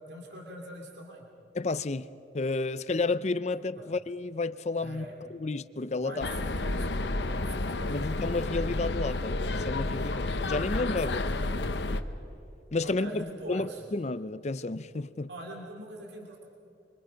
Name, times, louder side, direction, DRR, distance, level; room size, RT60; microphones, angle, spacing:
voice 1, 0.1-1.3 3.8-3.9 4.8-5.1 6.0-8.0 11.0-11.5 12.8-13.8 15.3-16.4, right 1 dB, 70° right, 2.7 m, -43 dB
voice 2, 1.5-2.1 2.3-5.1 5.3-6.3 7.9-11.2 12.7-15.3, left 3 dB, 40° left, 0.6 m, -31 dB
sound 1, 6.2-12.0, left 2 dB, 75° left, 0.9 m, -31 dB
25.5 x 24.0 x 5.2 m
head